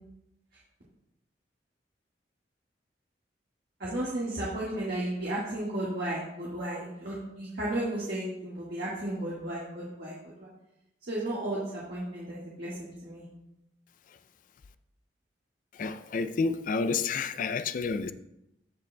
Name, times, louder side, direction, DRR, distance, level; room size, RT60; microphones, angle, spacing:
voice 1, 3.8-10.5 11.1-13.2, right 1 dB, 60° right, 1.6 m, -34 dB
voice 2, 15.7-18.1, left 4 dB, 50° left, 0.4 m, -30 dB
13.5 x 5.1 x 2.2 m
head